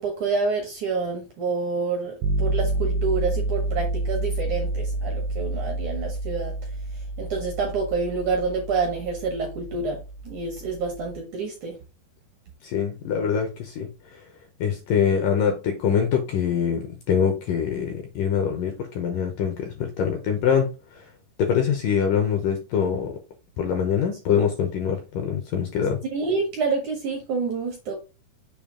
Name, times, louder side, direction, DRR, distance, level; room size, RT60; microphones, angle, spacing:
voice 1, 0.0-6.6 7.2-10.0 10.3-11.8 26.1-28.0, right 4 dB, 70° right, 1.9 m, -28 dB
sound 1, 2.2-11.2, right 2 dB, 90° right, 2.8 m, -29 dB
voice 2, 12.6-14.2 14.6-21.0 21.4-23.2 23.6-26.0, left 7 dB, 75° left, 2.0 m, -24 dB
7.0 x 2.8 x 5.0 m
omnidirectional pair, 4.8 m